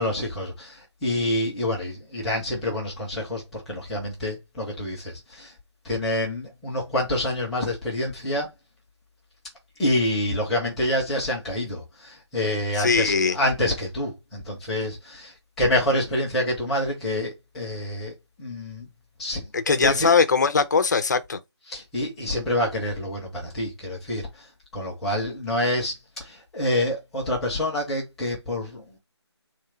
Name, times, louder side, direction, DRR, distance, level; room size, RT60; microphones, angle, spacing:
voice 1, 0.0-5.5 5.8-8.5 9.8-18.1 18.4-18.9 19.2-20.1 21.7-24.3 24.7-29.0, left 1 dB, ahead, 0.4 m, -27 dB
voice 2, 12.8-13.4 19.5-21.4, left 5 dB, 40° left, 0.7 m, -20 dB
3.6 x 3.2 x 4.4 m
figure-of-eight pair, 160°, 15 cm